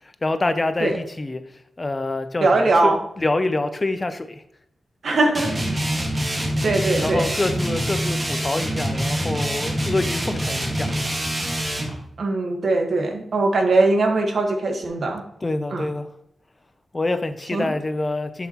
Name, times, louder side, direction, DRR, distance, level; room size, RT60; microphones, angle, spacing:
voice 1, 0.0-4.4 7.0-11.3 15.4-16.1 16.9-18.5, left 2 dB, 25° left, 0.6 m, -26 dB
voice 2, 2.4-3.0 5.0-5.5 6.6-7.3 12.2-15.2 15.7-15.8 17.5-17.7, right 2 dB, 65° right, 1.4 m, -20 dB
sound 1, 5.3-11.9, right 1 dB, 25° right, 1.7 m, -25 dB
11.0 x 5.8 x 3.0 m
wide cardioid pair, 115°, 0 cm